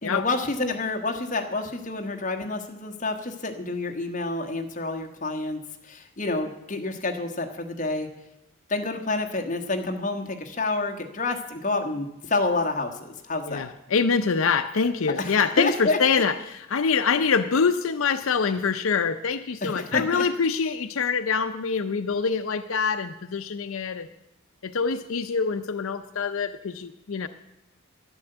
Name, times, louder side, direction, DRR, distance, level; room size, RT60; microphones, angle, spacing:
voice 1, 0.0-5.6 5.9-8.1 8.7-13.6 15.2-16.2 19.6-20.2, left 2 dB, 35° left, 4 dB, 1.3 m, -28 dB
voice 2, 13.5-24.1 24.6-27.3, left 5 dB, 80° left, 9 dB, 0.6 m, -25 dB
11.0 x 10.5 x 7.9 m, 0.89 s
head